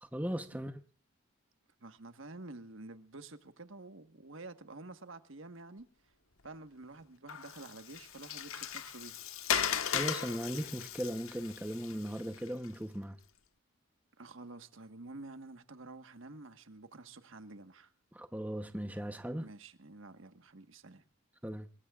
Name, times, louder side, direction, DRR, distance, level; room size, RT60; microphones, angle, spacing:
voice 1, 0.0-0.7 9.9-13.2 18.1-19.5 21.4-21.7, equal, 5° right, 0.9 m, -38 dB
voice 2, 1.8-6.1 6.4-9.2 14.2-17.9 19.4-21.0, right 2 dB, 70° right, 1.4 m, -49 dB
Water, 7.3-12.7, left 8 dB, 80° left, 1.4 m, -37 dB
26.5 x 21.5 x 2.4 m
head